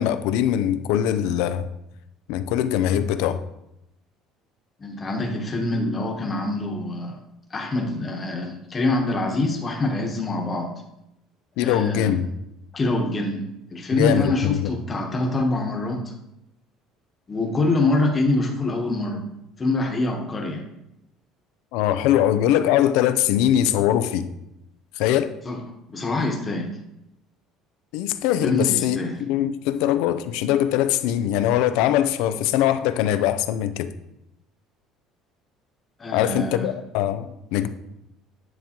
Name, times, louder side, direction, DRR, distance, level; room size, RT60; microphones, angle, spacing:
voice 1, 0.0-1.7 2.3-3.4 11.6-12.3 13.9-14.7 21.7-24.3 25.0-25.3 27.9-33.9 36.1-37.7, left 11 dB, 80° left, 0.4 m, -22 dB
voice 2, 4.8-7.2 7.5-10.7 11.6-12.2 12.7-13.4 13.7-16.1 17.3-19.2 19.6-20.7 25.4-25.6 25.9-26.7 28.4-29.2 36.0-36.7, left 2 dB, 25° left, 1.1 m, -25 dB
9.5 x 3.7 x 2.9 m
cardioid pair, 130°, 0 cm